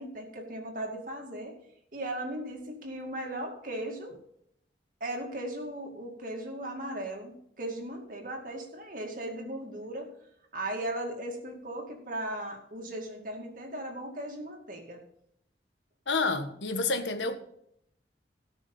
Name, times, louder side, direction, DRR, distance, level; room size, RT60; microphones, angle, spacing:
voice 1, 0.0-1.5 1.9-4.1 5.0-10.1 10.5-15.0, right 1 dB, 50° right, 2.3 m, -37 dB
voice 2, 16.1-17.4, left 3 dB, 85° left, 1.3 m, -29 dB
17.5 x 6.1 x 5.4 m
head